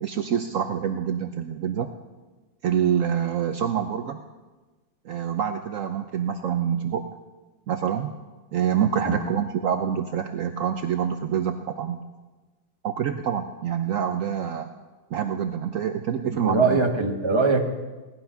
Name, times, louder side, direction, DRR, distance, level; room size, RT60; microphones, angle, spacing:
voice 1, 0.0-1.9 2.6-4.2 5.0-7.1 7.7-8.1 8.5-12.0 12.8-14.7 15.1-16.8, right 8 dB, 75° right, 7 dB, 0.7 m, -26 dB
voice 2, 16.3-17.6, right 4 dB, 20° right, 3 dB, 1.0 m, -22 dB
17.5 x 11.0 x 5.7 m, 1.2 s
omnidirectional pair, 2.2 m